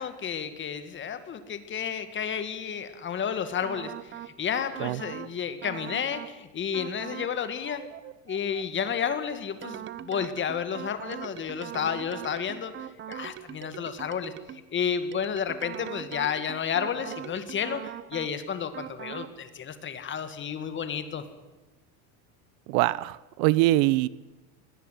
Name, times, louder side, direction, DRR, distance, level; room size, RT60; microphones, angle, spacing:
voice 1, 0.0-7.8 8.3-21.2, left 7 dB, 25° left, 11 dB, 2.0 m, -31 dB
sound 1, 3.6-4.3 4.7-5.3 5.6-6.3 6.7-7.3 7.6-14.7 15.1-18.3 18.7-19.3, right 11 dB, 25° right, 0.8 m, -41 dB
voice 2, 22.7-24.1, right 17 dB, 65° right, 20 dB, 0.9 m, -23 dB
21.5 x 18.0 x 9.3 m, 1.1 s
supercardioid pair, 150°, 45 cm